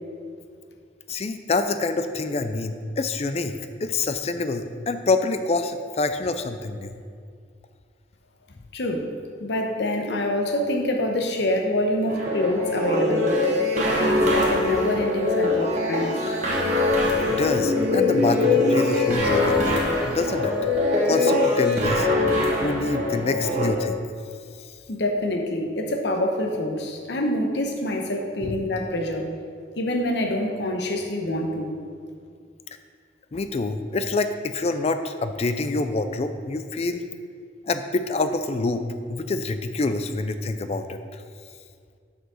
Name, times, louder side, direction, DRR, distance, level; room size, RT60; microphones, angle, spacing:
voice 1, 1.1-7.0 17.2-20.5 21.0-22.1 22.6-24.0 24.6-24.7 28.4-28.6 33.3-37.0 37.7-41.2, left 3 dB, 35° left, 9 dB, 0.4 m, -26 dB
voice 2, 8.7-9.1 9.4-13.4 13.7-16.3 24.9-29.3 29.8-31.7, left 1 dB, 75° left, 2 dB, 0.9 m, -26 dB
sound 1, 12.1-23.7, left 2 dB, 40° right, 1.4 m, -22 dB
6.3 x 4.9 x 6.3 m, 2.2 s
head